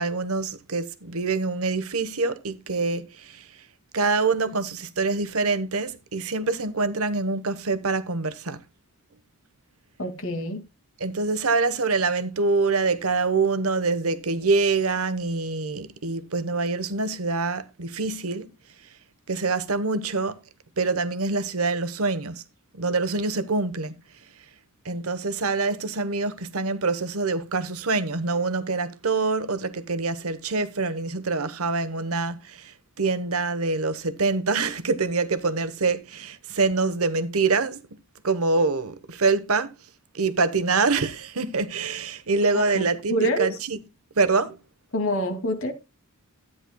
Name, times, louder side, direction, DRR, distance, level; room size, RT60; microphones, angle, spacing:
voice 1, 0.0-3.4 3.9-8.6 11.0-18.5 19.3-20.4 20.8-22.4 22.8-23.9 24.8-32.7 33.0-37.8 38.2-39.7 40.1-43.8 44.2-44.6, right 3 dB, 70° right, 1.1 m, -25 dB
voice 2, 10.0-10.6 42.5-43.6 44.9-45.7, equal, 60° left, 2.6 m, -27 dB
13.0 x 9.9 x 2.3 m
head